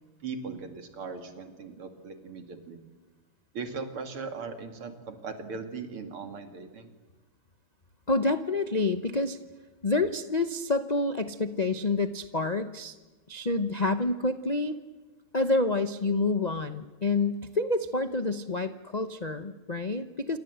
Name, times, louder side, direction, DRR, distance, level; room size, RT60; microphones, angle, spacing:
voice 1, 0.2-2.8 3.5-6.9, right 4 dB, 75° right, 7 dB, 3.3 m, -39 dB
voice 2, 8.1-9.4 9.8-13.0 13.3-14.8 15.3-20.4, left 3 dB, 65° left, 9 dB, 0.4 m, -28 dB
28.5 x 25.0 x 8.1 m, 1.3 s
omnidirectional pair, 2.4 m